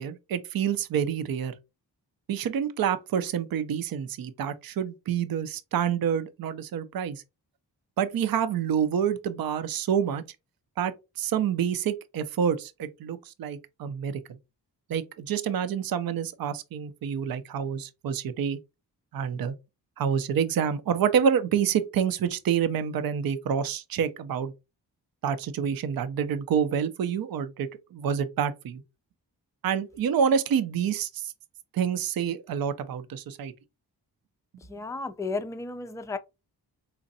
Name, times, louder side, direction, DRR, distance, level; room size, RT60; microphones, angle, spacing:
voice 1, 0.0-1.5 2.3-7.2 8.0-10.2 10.8-14.2 14.9-18.6 19.1-19.5 20.0-24.5 25.2-28.8 29.6-31.3 31.7-33.5, right 8 dB, 55° right, 0.5 m, -27 dB
voice 2, 34.7-36.2, left 3 dB, 10° left, 0.3 m, -33 dB
4.0 x 2.5 x 2.6 m
cardioid pair, 45°, 42 cm